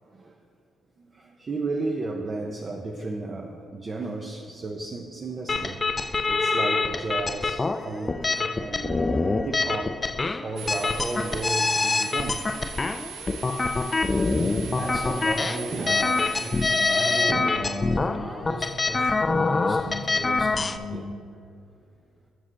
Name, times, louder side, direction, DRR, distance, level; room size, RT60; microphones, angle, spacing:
voice 1, 1.0-9.1 9.4-10.1 10.4-12.7 15.7-16.0 17.3-17.5 20.5-20.6 20.9-21.1, right 3 dB, 35° right, 1 dB, 0.6 m, -33 dB
sound 1, 5.5-20.8, left 3 dB, 25° left, 0.3 m, -25 dB
sound 2, 10.6-17.3, right 7 dB, 80° right, 0.8 m, -40 dB
voice 2, 14.2-21.1, equal, 20° right, -2 dB, 2.0 m, -35 dB
9.4 x 6.2 x 4.5 m, 2.3 s
cardioid pair, 90°, 0 cm